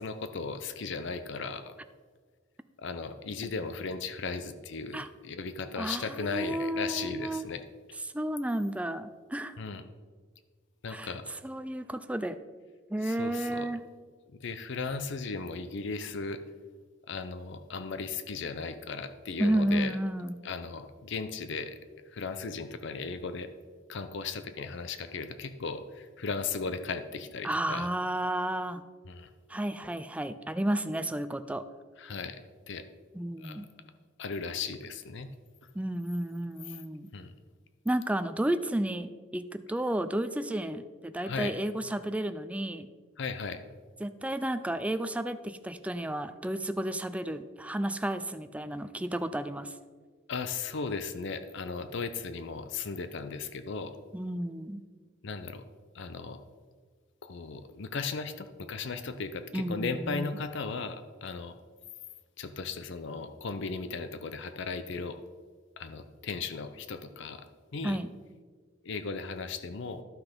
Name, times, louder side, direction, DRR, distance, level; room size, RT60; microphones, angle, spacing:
voice 1, 0.0-1.7 2.8-7.6 9.6-9.8 10.8-11.2 13.0-13.7 14.4-16.4 17.1-20.0 20.4-21.8 22.1-23.5 23.9-27.9 29.1-29.3 32.0-32.4 32.7-32.8 33.4-33.6 34.2-35.3 36.7-36.8 37.1-37.3 41.2-41.5 43.2-43.6 50.3-53.9 55.2-55.6 55.9-56.4 57.2-61.5 62.4-65.2 65.8-67.4 67.7-68.0 68.8-70.0, left 4 dB, 60° left, 10 dB, 0.6 m, -36 dB
voice 2, 5.8-7.5 8.1-9.6 10.9-11.1 11.4-12.4 12.9-13.8 19.4-20.4 27.4-28.8 29.5-31.6 33.1-33.7 35.8-37.1 37.9-42.9 44.0-49.7 54.1-54.8 59.5-60.4 67.8-68.1, right 1 dB, 5° right, 11 dB, 0.4 m, -32 dB
12.0 x 5.9 x 5.1 m, 1.5 s
head